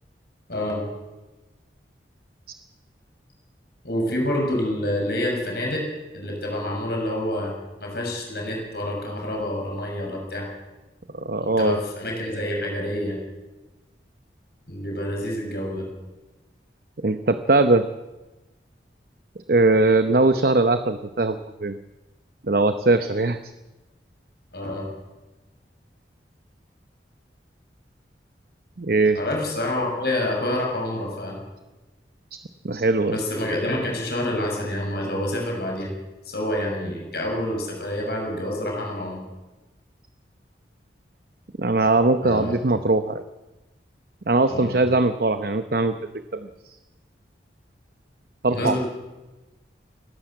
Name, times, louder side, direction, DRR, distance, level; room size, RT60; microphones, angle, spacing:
voice 1, 0.5-0.8 3.8-5.9 6.1-7.5 7.8-10.5 11.4-13.2 14.7-15.9 24.5-24.9 29.1-31.4 33.1-35.9 36.3-39.2 42.2-42.5 44.5-44.7 48.5-48.8, left 1 dB, 60° left, 0 dB, 6.5 m, -27 dB
voice 2, 11.1-11.8 17.0-17.9 19.5-21.8 22.5-23.4 28.8-29.2 32.6-33.2 41.6-43.2 44.3-45.9 46.3-46.5 48.4-48.8, right 2 dB, 55° right, 10 dB, 0.8 m, -20 dB
28.5 x 12.0 x 7.9 m, 1.1 s
head